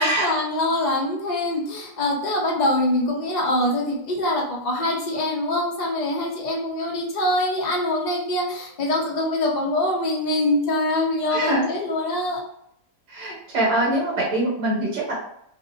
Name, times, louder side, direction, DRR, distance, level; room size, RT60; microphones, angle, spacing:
voice 1, 0.0-12.4, left 1 dB, 70° left, -2 dB, 0.4 m, -24 dB
voice 2, 11.3-11.7 13.1-15.1, right 1 dB, 80° right, -4 dB, 1.9 m, -23 dB
3.5 x 2.6 x 2.7 m, 0.73 s
omnidirectional pair, 1.9 m